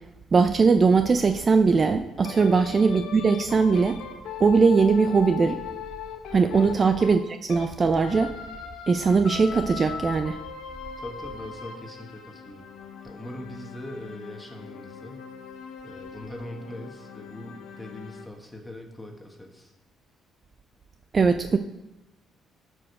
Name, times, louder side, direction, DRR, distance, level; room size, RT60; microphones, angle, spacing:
voice 1, 0.3-4.0 4.4-5.6 6.3-8.3 8.9-10.4 21.1-21.6, right 4 dB, 30° right, 9 dB, 0.4 m, -20 dB
sound 1, 2.2-7.7 8.0-18.3, left 8 dB, 80° left, 1.0 m, -40 dB
voice 2, 11.0-12.7 13.0-15.3 15.8-19.7, left 1 dB, 10° left, 2 dB, 1.5 m, -41 dB
12.5 x 5.0 x 4.8 m, 0.96 s
cardioid pair, 115°, 0 cm